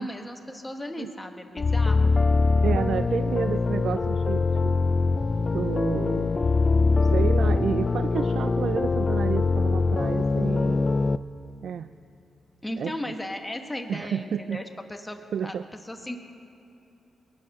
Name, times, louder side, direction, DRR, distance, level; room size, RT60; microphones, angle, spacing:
voice 1, 0.0-2.2 12.6-14.6 14.9-15.6 15.8-16.2, left 1 dB, 15° left, 4 dB, 1.6 m, -36 dB
sound 1, 1.6-11.2, left 3 dB, 35° left, 0.4 m, -23 dB
voice 2, 2.6-4.8 5.5-6.4 7.0-11.0 11.6-11.9 12.8-12.9 13.9-14.6 15.3-15.7, right 8 dB, 70° right, 13 dB, 0.3 m, -30 dB
22.5 x 9.7 x 6.6 m, 2.9 s
cardioid pair, 85°, 0 cm